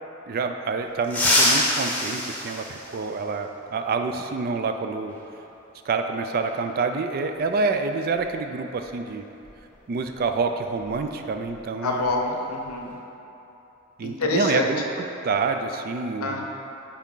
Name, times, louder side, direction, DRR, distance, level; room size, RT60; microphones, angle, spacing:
voice 1, 0.3-5.1 5.9-9.2 9.9-12.1 14.0-16.5, right 4 dB, 45° right, 6 dB, 0.3 m, -27 dB
sound 1, 1.0-3.5 5.1-5.2 6.4-6.5 8.2-8.3 8.7-8.9 9.4-11.6 11.8-12.1 12.5-12.9, left 1 dB, 10° left, 0.9 m, -26 dB
voice 2, 11.8-13.0 14.0-14.7 16.2-16.5, left 3 dB, 80° left, 1 dB, 0.7 m, -26 dB
8.5 x 3.6 x 3.8 m, 3.0 s
head